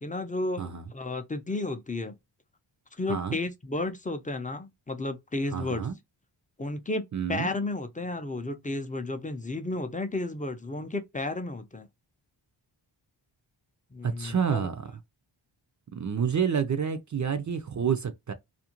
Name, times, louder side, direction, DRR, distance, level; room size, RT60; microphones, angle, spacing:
voice 1, 0.0-2.2 3.0-5.9 6.6-7.0 7.3-11.9 13.9-14.7, left 2 dB, 15° left, 0.5 m, -32 dB
voice 2, 5.5-6.0 7.1-7.5 14.0-14.9 15.9-18.3, right 7 dB, 40° right, 0.5 m, -29 dB
2.5 x 2.1 x 2.9 m
cardioid pair, 60°, 47 cm